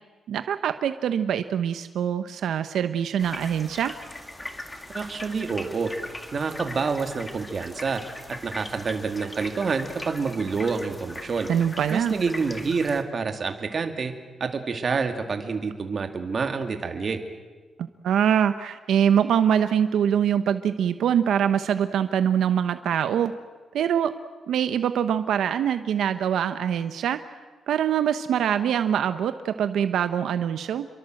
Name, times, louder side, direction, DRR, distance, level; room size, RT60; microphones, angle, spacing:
voice 1, 0.3-3.9 11.5-12.1 17.8-23.3 23.7-24.1 24.5-27.2 27.7-30.9, right 9 dB, 85° right, 10 dB, 1.0 m, -24 dB
sound 1, 3.2-13.0, left 1 dB, 10° left, 1.9 m, -40 dB
voice 2, 4.9-5.9 6.3-8.0 8.4-11.5 11.9-14.1 14.4-17.2, right 5 dB, 35° right, 6 dB, 2.4 m, -27 dB
29.0 x 23.5 x 7.8 m, 1.4 s
wide cardioid pair, 155°, 0 cm